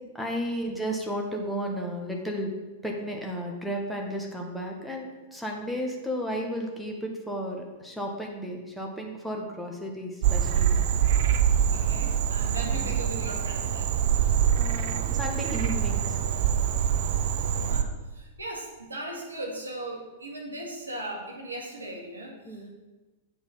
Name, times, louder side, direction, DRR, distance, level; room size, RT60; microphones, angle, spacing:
voice 1, 0.1-2.5 2.8-10.8 12.7-12.9 14.6-16.2 22.5-22.7, equal, ahead, -1 dB, 1.3 m, -33 dB
Frog, 10.2-17.8, right 9 dB, 55° right, 0.6 m, -25 dB
voice 2, 11.7-13.9 17.6-22.6, right 1 dB, 80° right, -1 dB, 2.0 m, -38 dB
8.1 x 4.7 x 5.5 m, 1.2 s
figure-of-eight pair, 100°, 0 cm